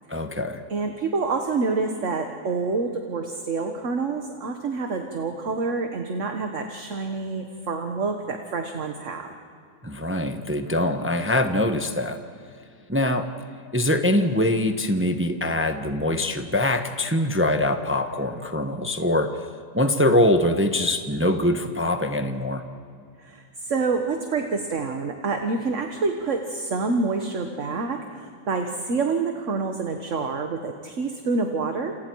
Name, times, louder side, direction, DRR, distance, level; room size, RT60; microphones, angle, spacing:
voice 1, 0.1-0.6 9.8-12.2 12.9-13.3 13.7-19.4 19.7-22.6, left 1 dB, 10° right, 6 dB, 0.9 m, -23 dB
voice 2, 0.7-9.3 23.2-32.0, right 4 dB, 50° right, 4 dB, 1.6 m, -27 dB
28.5 x 28.0 x 4.7 m, 2.4 s
omnidirectional pair, 1.7 m